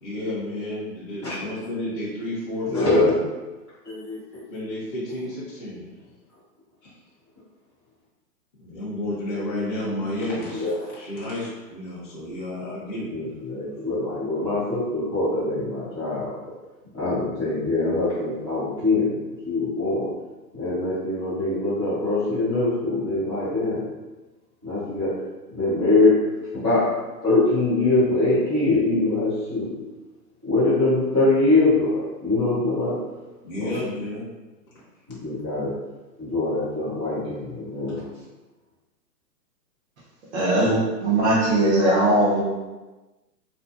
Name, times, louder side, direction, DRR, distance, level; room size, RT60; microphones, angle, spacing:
voice 1, 0.0-3.1 4.5-5.9 6.8-6.9 8.6-13.1 33.4-34.3, left 1 dB, 35° left, -8 dB, 0.5 m, -31 dB
voice 2, 2.7-3.1 3.8-4.4 10.5-10.7 13.1-16.3 16.9-19.1 19.4-20.1 20.5-23.9 24.6-25.1 25.5-26.2 26.5-26.9 27.2-29.7 30.4-33.0 33.6-33.7 35.2-35.7 36.2-38.0, left 2 dB, 20° right, -16 dB, 0.4 m, -23 dB
voice 3, 40.3-42.4, right 1 dB, 45° right, -5 dB, 0.7 m, -20 dB
2.5 x 2.2 x 2.4 m, 1.2 s
hypercardioid pair, 160°, 50 cm